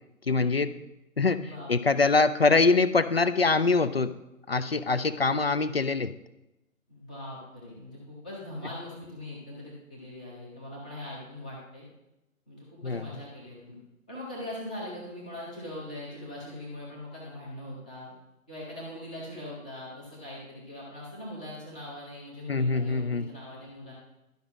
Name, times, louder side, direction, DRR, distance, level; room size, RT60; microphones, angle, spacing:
voice 1, 0.3-0.7 1.2-4.1 4.5-6.1 12.8-13.1 22.5-23.3, left 3 dB, 45° left, 13 dB, 0.4 m, -24 dB
voice 2, 1.4-2.0 6.9-11.9 12.5-13.8 14.1-18.1 18.5-23.9, left 1 dB, 5° left, -6 dB, 0.7 m, -41 dB
12.0 x 5.3 x 6.1 m, 0.94 s
figure-of-eight pair, 145°, 43 cm